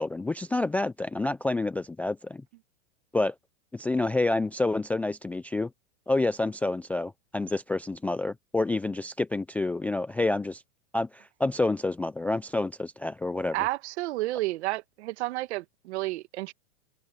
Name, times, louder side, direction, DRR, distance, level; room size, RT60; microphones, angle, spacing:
voice 1, 0.0-2.4 3.1-3.3 3.7-5.7 6.1-10.6 10.9-13.7, left 2 dB, 5° left, 0.4 m, -28 dB
voice 2, 13.5-16.5, right 18 dB, 65° right, 1.9 m, -31 dB
hypercardioid pair, 130°, 36 cm